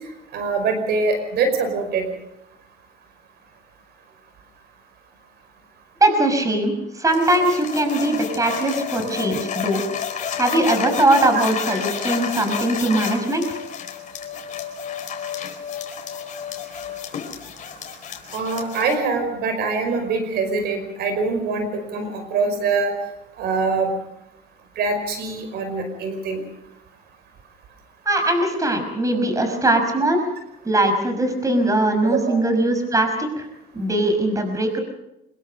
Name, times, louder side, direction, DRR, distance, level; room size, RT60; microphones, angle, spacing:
voice 1, 0.3-2.1 18.3-22.9 23.4-23.9 24.8-26.4 32.1-32.4, right 4 dB, 75° right, 7 dB, 5.3 m, -23 dB
voice 2, 6.0-9.8 10.3-13.5 28.1-30.3 30.6-33.5 33.7-34.8, right 1 dB, 20° right, 6 dB, 5.7 m, -20 dB
sound 1, 7.1-19.0, left 8 dB, 50° left, 4.3 m, -31 dB
25.5 x 22.0 x 5.3 m, 0.86 s
cardioid pair, 110°, 17 cm